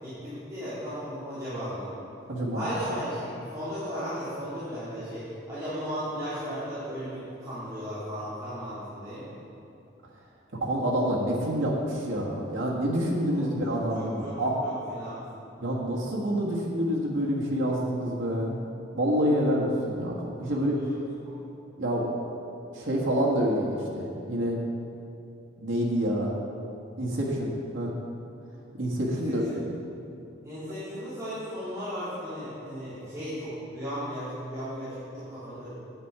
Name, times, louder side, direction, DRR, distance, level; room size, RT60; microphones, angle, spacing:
voice 1, 0.0-1.9 2.5-9.3 13.3-13.4 13.9-14.3 14.6-15.2 20.4-20.9 21.2-21.4 29.1-29.6 30.4-35.7, equal, 20° right, -14 dB, 2.7 m, -36 dB
voice 2, 2.3-2.7 10.6-14.6 15.6-18.6 18.9-20.7 21.8-22.1 22.7-24.6 25.6-26.4 27.0-27.5 27.7-27.9 28.8-29.6, equal, 85° right, -4 dB, 1.6 m, -27 dB
9.6 x 8.7 x 4.8 m, 2.7 s
head